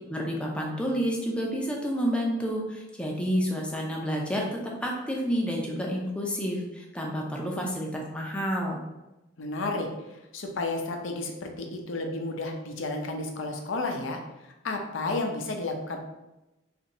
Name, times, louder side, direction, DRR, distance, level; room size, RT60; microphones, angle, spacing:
voice 1, 0.1-8.8, equal, 5° left, -2 dB, 0.4 m, -29 dB
voice 2, 9.4-9.9 10.3-14.2 14.6-16.0, left 2 dB, 80° left, 2 dB, 0.5 m, -32 dB
2.7 x 2.5 x 4.0 m, 0.99 s
head